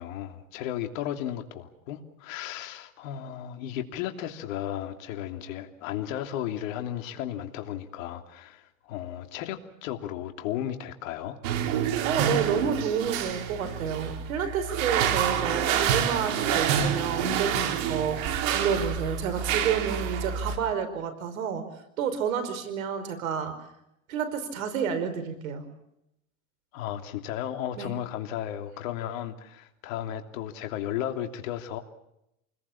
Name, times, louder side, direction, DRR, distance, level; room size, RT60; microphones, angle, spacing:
voice 1, 0.0-11.4 26.7-31.8, left 11 dB, 75° left, 6 dB, 3.1 m, -34 dB
sound 1, 11.4-20.6, right 8 dB, 70° right, 4.3 m, -28 dB
voice 2, 12.0-21.7 22.0-23.6 24.1-25.7 27.7-27.9, right 7 dB, 85° right, 11 dB, 5.1 m, -30 dB
29.5 x 21.0 x 7.2 m, 0.82 s
hypercardioid pair, 100°, 40 cm